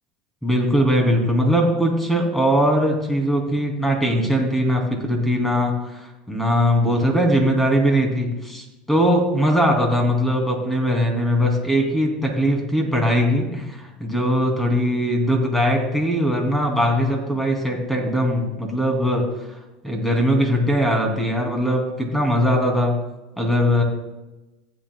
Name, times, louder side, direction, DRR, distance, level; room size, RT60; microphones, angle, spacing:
voice 1, 0.4-19.6 19.8-23.0 23.4-23.8, equal, 5° left, 1 dB, 2.8 m, -20 dB
15.0 x 9.1 x 2.3 m, 1.0 s
hypercardioid pair, 95°, 4 cm